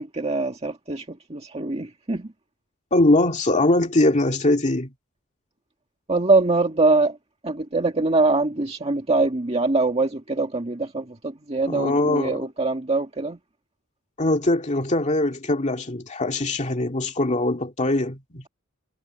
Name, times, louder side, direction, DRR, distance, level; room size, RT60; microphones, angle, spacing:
voice 1, 0.0-2.3 6.1-7.2 7.4-13.4, right 3 dB, 30° right, 1.9 m, -23 dB
voice 2, 2.9-4.9 11.7-12.5 14.2-18.5, left 2 dB, 35° left, 2.2 m, -22 dB
head